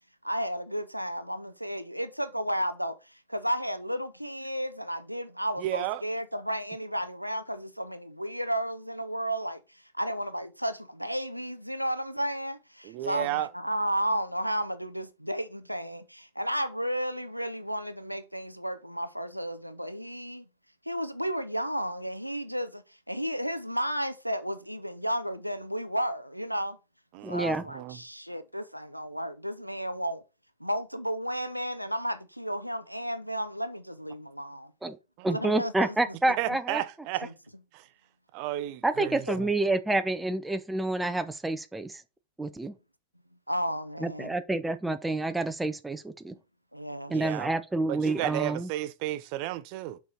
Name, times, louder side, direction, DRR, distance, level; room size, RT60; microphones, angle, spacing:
voice 1, 0.2-20.5 20.9-26.8 27.3-30.2 30.6-34.7 35.3-36.2 37.2-37.3 39.3-39.5 43.5-44.3 46.7-47.1, equal, 90° right, 0.7 m, -33 dB
voice 2, 5.6-6.0 12.8-13.5 27.1-28.0 35.2-35.3 36.4-37.3 37.7-37.9 38.3-39.5 47.1-47.5 47.9-50.0, right 14 dB, 45° right, 0.8 m, -33 dB
voice 3, 27.2-27.6 34.8-35.0 35.2-36.8 38.8-42.0 42.4-42.7 44.0-46.3 47.1-48.7, right 2 dB, 5° right, 0.8 m, -28 dB
6.4 x 4.8 x 4.2 m
figure-of-eight pair, 90°, 0 cm